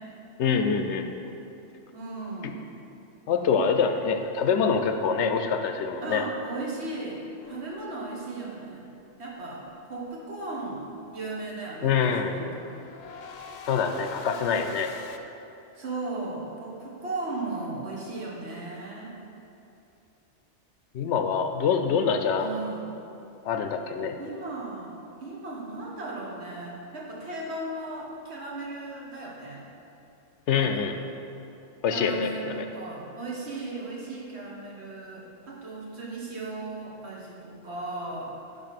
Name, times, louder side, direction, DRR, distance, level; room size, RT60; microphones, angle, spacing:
voice 1, 0.4-1.1 2.4-2.5 3.3-6.3 11.8-12.3 13.7-14.9 20.9-22.5 23.4-24.2 30.5-30.9 31.8-32.6, left 6 dB, 75° left, 6 dB, 0.9 m, -25 dB
voice 2, 1.9-2.6 6.0-7.2 7.5-8.9 9.2-12.7 15.7-19.1 22.4-22.9 24.2-29.7 30.5-30.9 31.9-38.6, right 2 dB, 65° right, -4 dB, 1.7 m, -36 dB
sound 1, 7.4-8.3 12.1-15.2, left 4 dB, 55° left, 0.5 m, -44 dB
10.5 x 5.4 x 4.2 m, 2.8 s
omnidirectional pair, 1.2 m